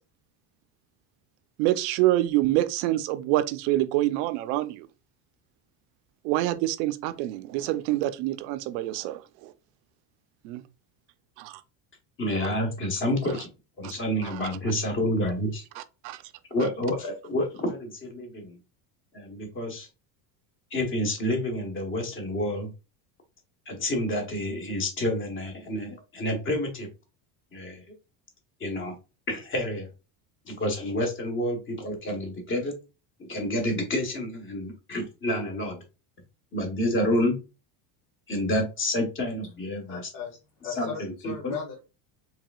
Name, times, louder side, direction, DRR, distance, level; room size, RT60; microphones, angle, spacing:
voice 1, 1.6-4.9 6.2-9.5 10.4-10.6 11.4-11.6 13.8-13.9 15.8-16.2, right 15 dB, 90° right, 0.7 m, -26 dB
voice 2, 12.2-13.5 13.8-15.6 16.5-18.6 19.1-19.9 20.7-22.7 23.7-26.9 27.5-27.8 28.6-28.9 29.3-29.9 30.5-32.7 33.3-35.8 36.5-37.4 38.3-40.0 40.8-41.5, left 1 dB, 25° left, 1.1 m, -29 dB
voice 3, 39.9-41.8, left 7 dB, 65° left, 1.7 m, -37 dB
4.8 x 3.4 x 2.3 m
cardioid pair, 160°, 48 cm